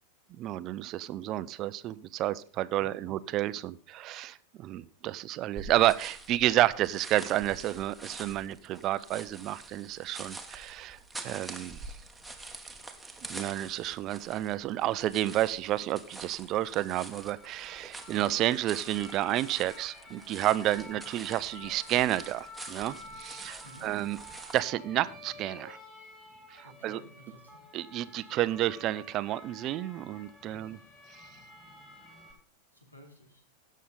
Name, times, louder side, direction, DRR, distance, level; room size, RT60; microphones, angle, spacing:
voice 1, 0.3-11.0 11.2-11.9 13.3-24.2 24.5-25.8 26.5-27.0 27.7-30.8, right 14 dB, 35° right, 16 dB, 0.5 m, -30 dB
voice 2, 2.8-3.1 23.6-23.9 26.6-27.6 30.4-30.7 32.7-33.4, left 1 dB, 80° left, 3 dB, 3.0 m, -54 dB
sound 1, 5.5-24.6, right 2 dB, 5° right, 1.2 m, -46 dB
sound 2, 17.2-32.3, left 2 dB, 15° left, 4.2 m, -51 dB
17.0 x 6.4 x 4.0 m, 0.43 s
figure-of-eight pair, 90°, 0 cm